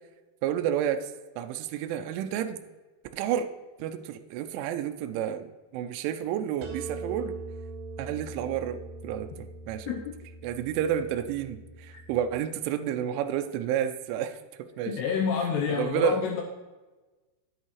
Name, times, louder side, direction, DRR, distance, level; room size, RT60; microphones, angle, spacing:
voice 1, 0.4-1.1 1.4-2.6 3.1-3.5 3.8-7.4 8.0-9.9 10.4-15.0 15.8-16.2, right 9 dB, 85° right, 8 dB, 2.9 m, -30 dB
sound 1, 6.6-12.4, right 3 dB, 70° right, 3.1 m, -42 dB
voice 2, 9.9-10.2 11.9-12.0 14.9-16.4, left 6 dB, 85° left, 2 dB, 2.4 m, -28 dB
10.0 x 8.2 x 3.1 m, 1.2 s
omnidirectional pair, 5.7 m